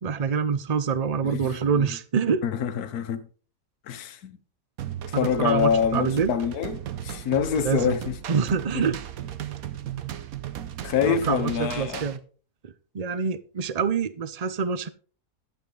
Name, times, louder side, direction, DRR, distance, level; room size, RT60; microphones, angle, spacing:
voice 1, 0.0-2.4 5.1-6.3 7.6-7.9 8.3-9.0 11.1-12.2 12.6-14.9, right 6 dB, 40° right, 0.5 m, -26 dB
voice 2, 1.2-1.9 2.4-3.3 3.8-4.4 5.2-8.2 8.7-8.9 10.8-12.1, left 8 dB, 70° left, 1.5 m, -26 dB
sound 1, 4.8-12.2, right 11 dB, 65° right, 1.3 m, -36 dB
11.5 x 8.7 x 3.9 m
omnidirectional pair, 1.7 m